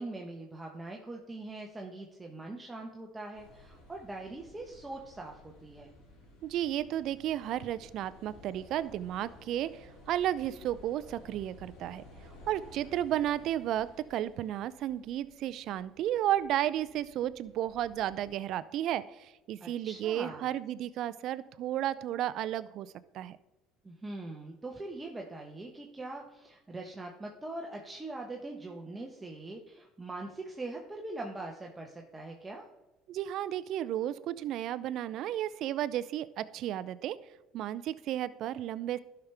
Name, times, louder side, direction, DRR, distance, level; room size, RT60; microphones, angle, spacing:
voice 1, 0.0-5.9 19.6-20.5 23.8-32.7, right 2 dB, 15° right, 0 dB, 1.1 m, -42 dB
sound 1, 3.3-18.4, left 1 dB, 75° left, 3.3 m, -55 dB
voice 2, 6.4-12.0 12.5-23.4 33.1-37.2 37.5-39.0, right 12 dB, 60° right, 16 dB, 0.4 m, -33 dB
12.0 x 5.8 x 3.4 m, 0.98 s
supercardioid pair, 90°, 0 cm